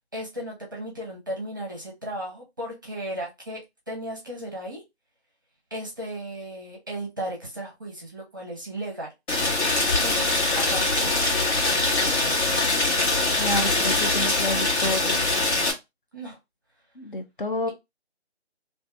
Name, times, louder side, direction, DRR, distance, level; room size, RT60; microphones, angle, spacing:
voice 1, 0.1-3.6 3.9-4.8 5.7-9.1 10.0-12.9 16.1-16.4, right 1 dB, 20° right, 0.7 m, -36 dB
Rain, 9.3-15.7, left 2 dB, 85° left, 1.4 m, -23 dB
voice 2, 13.4-15.2 17.0-17.7, left 1 dB, 50° left, 0.5 m, -29 dB
2.6 x 2.4 x 3.2 m
figure-of-eight pair, 165°, 33 cm